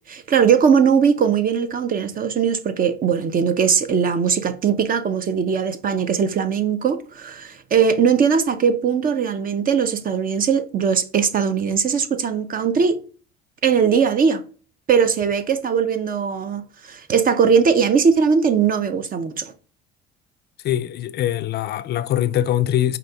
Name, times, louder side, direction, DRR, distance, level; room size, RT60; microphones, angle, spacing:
voice 1, 0.1-13.0 13.6-14.4 14.9-19.5, right 6 dB, 45° right, 0.7 m, -20 dB
voice 2, 20.6-23.0, left 12 dB, 55° left, 0.4 m, -22 dB
5.1 x 2.9 x 3.4 m
supercardioid pair, 85°, 20 cm